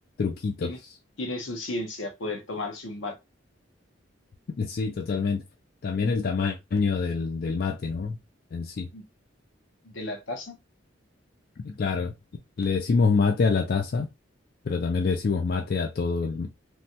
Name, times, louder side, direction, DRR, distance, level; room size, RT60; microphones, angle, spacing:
voice 1, 0.2-0.9 4.5-5.4 5.8-8.2 8.5-8.9 11.6-12.1 12.6-14.1 14.6-16.5, left 4 dB, 50° left, 0.4 m, -26 dB
voice 2, 1.2-3.1 8.9-9.0 9.8-10.6, left 2 dB, 85° left, 0.9 m, -33 dB
3.1 x 2.3 x 2.7 m
head